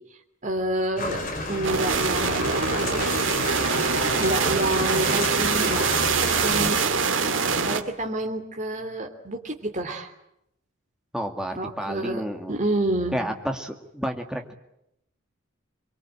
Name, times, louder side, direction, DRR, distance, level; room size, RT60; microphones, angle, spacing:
voice 1, 0.4-1.2 1.5-3.2 4.2-5.9 6.2-6.8 7.6-10.1 11.6-13.2, right 1 dB, 35° right, 3 dB, 3.0 m, -28 dB
sound 1, 1.0-6.8, left 2 dB, 40° left, 5.2 m, -31 dB
sound 2, 1.6-7.8, right 5 dB, 65° right, 2.2 m, -24 dB
voice 2, 11.1-12.5 13.1-14.5, equal, 5° right, 3 dB, 2.2 m, -30 dB
24.0 x 23.5 x 9.0 m, 0.80 s
head